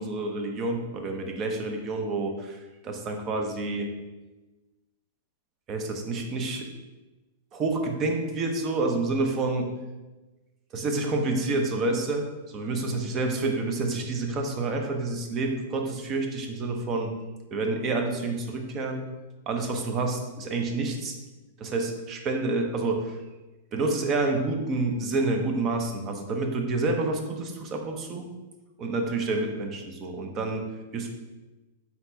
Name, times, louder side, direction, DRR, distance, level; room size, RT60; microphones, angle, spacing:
voice 1, 0.0-3.9 5.7-6.7 7.5-9.7 10.7-17.1 17.5-19.1 19.5-21.2 21.6-23.2 23.7-28.3 28.8-30.7 30.9-31.1, right 3 dB, 30° right, 4 dB, 0.6 m, -28 dB
4.2 x 4.0 x 2.7 m, 1.1 s
hypercardioid pair, 125°, 0 cm